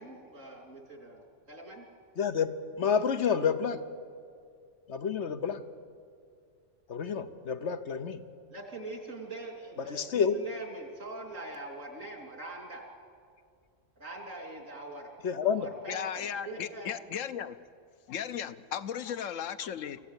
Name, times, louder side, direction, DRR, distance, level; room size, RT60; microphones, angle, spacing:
voice 1, 0.0-1.8 8.5-12.8 14.0-15.1 15.4-16.9, right 2 dB, 90° right, 1 dB, 3.4 m, -43 dB
voice 2, 2.2-3.8 4.9-5.6 6.9-8.2 9.8-10.4 15.2-15.7, left 6 dB, 65° left, 10 dB, 1.2 m, -29 dB
voice 3, 15.9-17.6 18.1-20.0, left 8 dB, 90° left, 12 dB, 1.2 m, -36 dB
24.5 x 15.5 x 8.3 m, 2.2 s
omnidirectional pair, 1.3 m